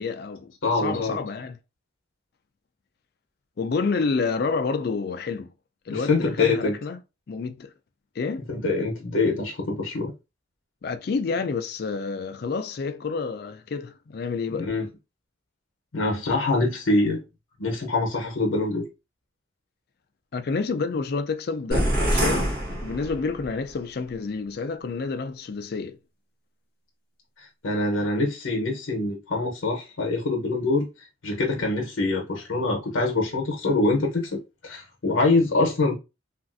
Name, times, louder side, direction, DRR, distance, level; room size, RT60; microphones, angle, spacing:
voice 1, 0.0-1.6 3.6-5.5 5.9-7.0 7.3-7.7 8.2-8.4 10.8-14.7 20.3-26.0, left 4 dB, 50° left, 0.3 m, -29 dB
voice 2, 0.6-1.2 5.9-6.8 8.5-10.1 14.5-14.9 15.9-17.2 17.6-18.8 27.4-30.9 31.2-35.9, left 2 dB, 80° left, 0.8 m, -24 dB
sound 1, 21.7-23.6, right 1 dB, 45° right, 1.1 m, -25 dB
3.1 x 2.5 x 2.5 m
head